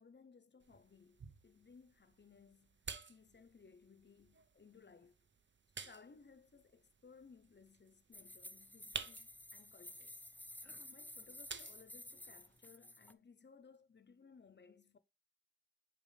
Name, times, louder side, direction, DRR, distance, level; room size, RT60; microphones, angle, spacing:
voice 1, 0.0-2.8 3.1-5.2 5.8-10.2 10.9-15.0, left 5 dB, 65° left, 0.6 m, -62 dB
sound 1, 0.6-12.6, right 5 dB, 75° right, 0.6 m, -53 dB
sound 2, 8.1-13.1, left 1 dB, 10° left, 0.6 m, -53 dB
7.0 x 5.3 x 3.2 m
wide cardioid pair, 50°, 19 cm